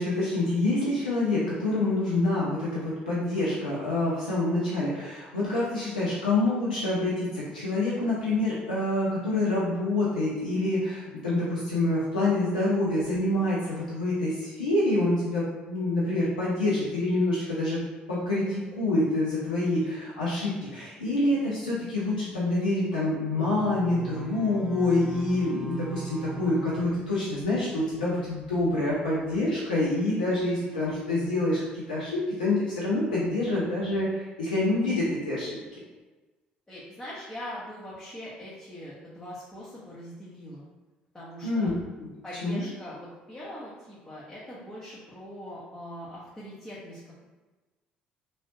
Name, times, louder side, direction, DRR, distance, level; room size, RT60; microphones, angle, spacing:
voice 1, 0.0-17.8 18.1-35.8 41.4-42.1 42.4-42.6, left 2 dB, 90° left, -7 dB, 0.6 m, -27 dB
sound 1, 23.4-27.8, right 3 dB, 10° right, 0.4 m, -41 dB
voice 2, 36.7-40.7 41.1-41.7 42.2-47.2, equal, 20° left, -9 dB, 1.0 m, -42 dB
3.1 x 2.7 x 2.7 m, 1.2 s
hypercardioid pair, 55°, 4 cm